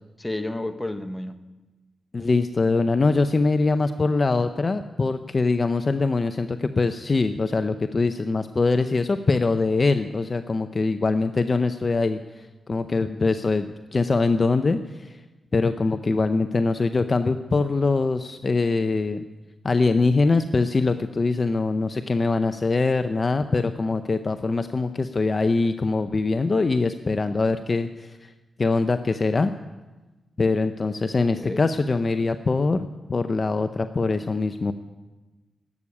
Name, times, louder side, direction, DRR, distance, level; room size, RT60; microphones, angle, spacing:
voice 1, 0.2-1.4 31.2-31.6, left 1 dB, 15° left, 9 dB, 1.1 m, -31 dB
voice 2, 2.1-15.2 15.5-19.2 19.6-28.3 28.6-29.5 30.4-34.7, left 3 dB, 40° left, 10 dB, 0.6 m, -23 dB
12.0 x 8.5 x 9.6 m, 1.2 s
cardioid pair, 65°, 0 cm